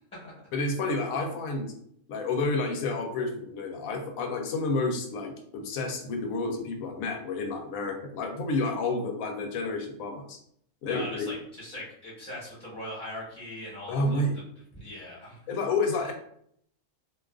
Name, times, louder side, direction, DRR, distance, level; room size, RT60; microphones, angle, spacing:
voice 1, 0.0-0.4 10.9-14.2 14.8-15.4 16.0-16.1, left 1 dB, 5° left, -8 dB, 0.8 m, -40 dB
voice 2, 0.5-1.7 2.1-10.4 10.8-11.3 13.9-14.3 15.5-16.1, left 3 dB, 90° left, 3 dB, 1.0 m, -30 dB
2.5 x 2.3 x 2.3 m, 0.69 s
omnidirectional pair, 1.4 m